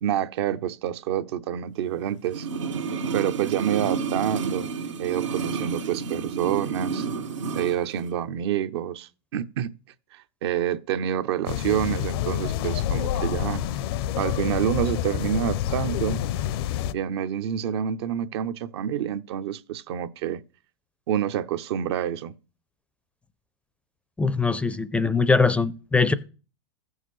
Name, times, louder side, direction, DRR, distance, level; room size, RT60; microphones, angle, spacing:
voice 1, 0.0-2.5 3.1-4.7 5.0-7.1 7.6-9.7 10.1-13.6 14.2-16.2 16.9-20.4 21.1-22.3, right 10 dB, 60° right, 0.7 m, -27 dB
sound 1, 2.3-7.8 8.0-8.1, right 5 dB, 85° right, 1.4 m, -30 dB
sound 2, 11.5-16.9, left 11 dB, 55° left, 0.5 m, -28 dB
voice 2, 24.2-26.1, left 4 dB, 10° left, 0.5 m, -22 dB
15.0 x 6.4 x 3.2 m
hypercardioid pair, 120°, 15 cm